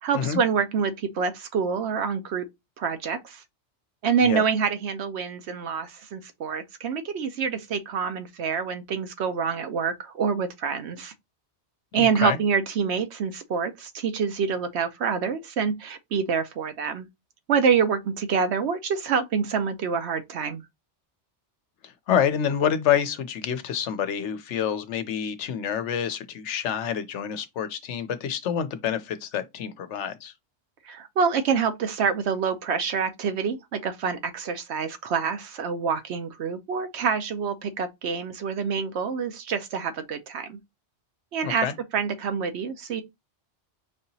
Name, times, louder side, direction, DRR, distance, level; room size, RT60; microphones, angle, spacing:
voice 1, 0.0-2.5 2.8-3.4 4.0-11.1 11.9-17.1 17.5-20.6 30.9-40.6 41.3-41.7 41.9-43.0, right 6 dB, 75° right, 0.9 m, -26 dB
voice 2, 11.9-12.4 21.8-30.3 41.4-41.7, left 8 dB, 80° left, 1.0 m, -27 dB
5.2 x 2.9 x 2.7 m
omnidirectional pair, 1.2 m